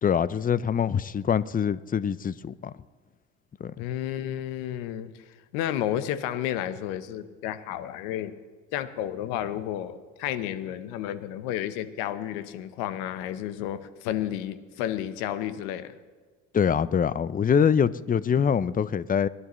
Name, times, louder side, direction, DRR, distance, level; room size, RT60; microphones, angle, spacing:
voice 1, 0.0-2.7 3.6-3.7 16.5-19.3, left 7 dB, 25° left, 0.5 m, -24 dB
voice 2, 3.8-5.1 5.5-8.3 8.7-15.9, left 11 dB, 80° left, 1.0 m, -31 dB
25.0 x 11.0 x 3.1 m
supercardioid pair, 75°, 34 cm